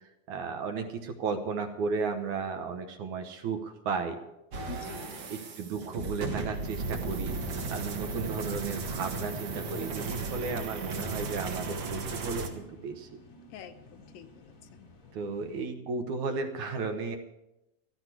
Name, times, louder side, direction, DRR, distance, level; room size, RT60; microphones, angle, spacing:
voice 1, 0.3-4.2 5.3-7.4 7.7-13.1 15.1-17.2, right 4 dB, 70° right, 6 dB, 2.1 m, -34 dB
sound 1, 4.5-12.5, right 3 dB, 50° right, 2.3 m, -35 dB
voice 2, 4.7-5.3 13.5-14.9, left 9 dB, 80° left, 8 dB, 2.5 m, -47 dB
sound 2, 8.0-15.7, left 1 dB, 40° left, 1.2 m, -54 dB
16.0 x 14.0 x 4.8 m, 0.91 s
omnidirectional pair, 4.2 m